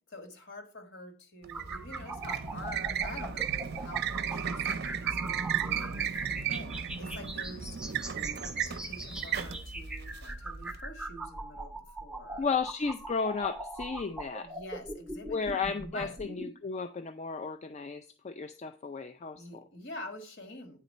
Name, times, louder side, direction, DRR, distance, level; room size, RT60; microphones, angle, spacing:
voice 1, 0.1-6.7 7.0-7.8 8.6-12.5 14.4-15.6 15.9-16.2 19.3-20.8, left 1 dB, 55° left, 6 dB, 1.5 m, -46 dB
sound 1, 1.4-10.8, right 9 dB, 50° right, 0.5 m, -35 dB
sound 2, 1.5-16.5, right 2 dB, 5° right, 0.7 m, -41 dB
voice 2, 12.4-14.5 15.3-16.1 16.4-19.4, left 5 dB, 30° left, 10 dB, 0.3 m, -33 dB
9.0 x 4.0 x 5.4 m, 0.39 s
head